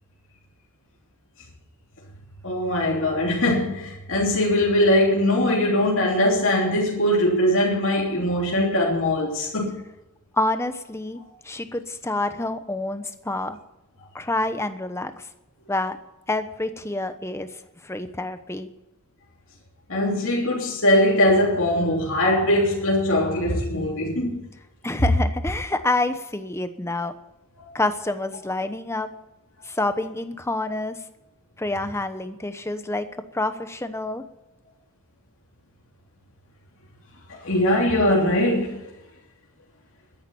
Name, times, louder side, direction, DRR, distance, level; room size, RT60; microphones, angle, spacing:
voice 1, 2.4-9.8 19.9-24.4 27.6-27.7 37.4-38.8, left 1 dB, 60° left, 3.2 m, -21 dB
voice 2, 10.3-13.6 14.1-15.3 15.7-16.0 16.3-17.5 17.8-18.7 24.8-27.1 27.7-29.1 29.6-31.0 31.6-33.1 33.3-34.2, left 2 dB, 10° left, 1.0 m, -27 dB
13.0 x 10.5 x 7.1 m
head